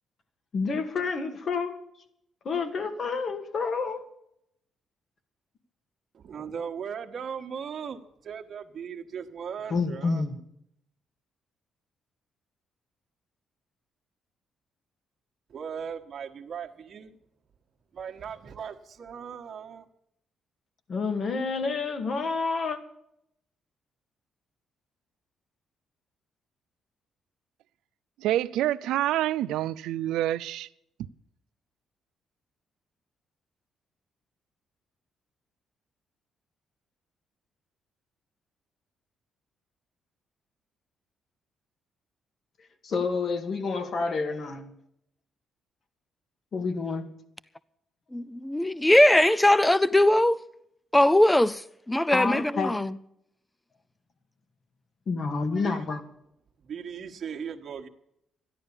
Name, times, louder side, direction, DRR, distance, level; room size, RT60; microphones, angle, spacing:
voice 1, 0.5-1.8 2.4-4.0 9.7-10.4 20.9-22.8 42.8-44.7 46.5-47.1 52.1-52.8 55.1-56.0, left 4 dB, 50° left, 2.1 m, -29 dB
voice 2, 6.1-10.2 15.5-17.1 17.9-19.9 55.6-55.9 56.6-57.9, right 7 dB, 50° right, 1.4 m, -38 dB
voice 3, 28.2-30.7, right 13 dB, 90° right, 0.5 m, -27 dB
voice 4, 48.1-50.4 50.9-51.6 51.9-52.9, left 1 dB, 10° left, 0.5 m, -20 dB
13.5 x 11.0 x 7.1 m
cardioid pair, 90°, 0 cm